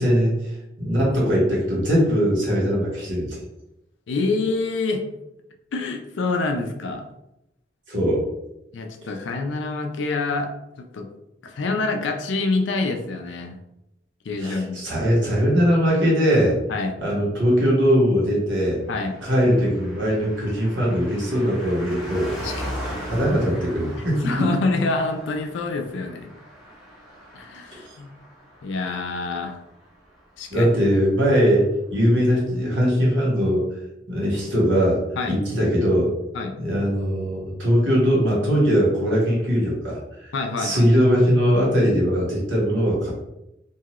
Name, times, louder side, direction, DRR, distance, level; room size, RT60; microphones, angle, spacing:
voice 1, 0.0-3.4 7.9-8.2 14.4-16.6 17.0-18.8 19.2-22.3 22.8-24.2 27.7-27.8 30.5-33.7 34.1-35.0 35.3-36.1 36.6-40.0 40.6-43.1, equal, 70° right, -5 dB, 1.2 m, -20 dB
voice 2, 4.1-5.1 5.7-7.0 8.7-10.5 10.8-11.1 11.4-13.6 14.2-14.8 16.7-16.9 18.9-19.1 22.4-22.8 24.2-26.3 27.3-28.1 28.6-29.6 30.4-30.7 35.2-35.4 36.3-36.6 40.3-40.9, left 3 dB, 70° left, 4 dB, 0.4 m, -26 dB
Car passing by, 18.9-30.7 31.0-31.1, equal, ahead, 0.7 m, -39 dB
2.7 x 2.3 x 2.9 m, 0.89 s
head